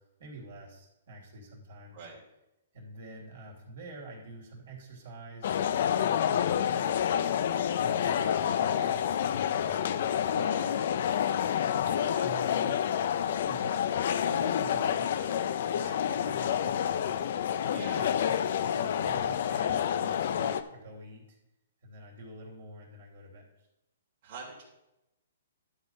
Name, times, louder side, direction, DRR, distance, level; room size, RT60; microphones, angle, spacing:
voice 1, 0.2-2.1 2.7-7.0 7.8-10.9 12.2-12.9 13.4-13.9 14.3-15.3 15.7-17.1 17.7-21.4 21.8-23.7, right 2 dB, 70° right, -1 dB, 2.9 m, -46 dB
voice 2, 1.9-2.2 10.1-10.3 11.9-12.3 17.7-18.0 24.2-24.6, right 4 dB, 50° right, -4 dB, 2.5 m, -45 dB
sound 1, 5.4-20.6, left 9 dB, 60° left, 0.5 m, -28 dB
11.5 x 4.1 x 5.5 m, 0.90 s
hypercardioid pair, 145°, 0 cm